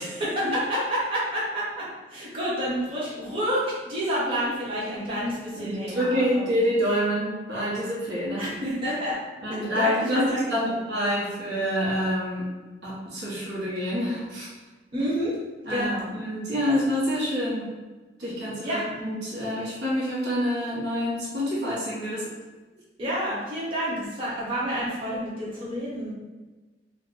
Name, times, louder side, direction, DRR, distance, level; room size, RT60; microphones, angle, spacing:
voice 1, 0.0-6.6 8.4-9.2 9.5-10.4 14.9-15.3 15.7-16.1 18.6-18.8 23.0-26.1, equal, 30° right, -9 dB, 1.1 m, -29 dB
voice 2, 5.6-8.4 9.4-12.5 12.8-14.5 15.0-15.1 15.6-17.7 18.2-22.3, equal, 80° right, -7 dB, 1.1 m, -27 dB
4.6 x 2.2 x 2.5 m, 1.2 s
head